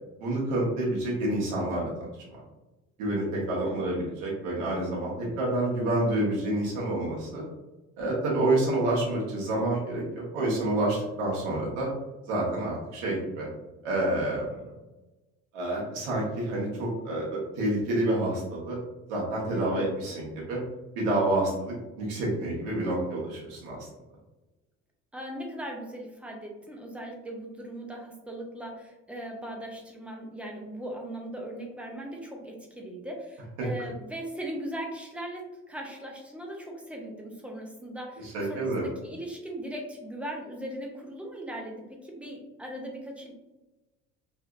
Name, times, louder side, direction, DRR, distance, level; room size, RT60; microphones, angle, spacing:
voice 1, 0.2-2.1 3.0-7.4 8.0-11.9 12.3-13.5 13.8-14.5 15.5-18.8 19.1-20.6 20.9-23.9 38.3-38.9, right 1 dB, 90° right, -4 dB, 1.2 m, -28 dB
voice 2, 19.5-19.9 25.1-43.3, right 1 dB, 5° right, 0 dB, 0.6 m, -39 dB
3.2 x 2.9 x 2.5 m, 1.1 s
cardioid pair, 130°, 30 cm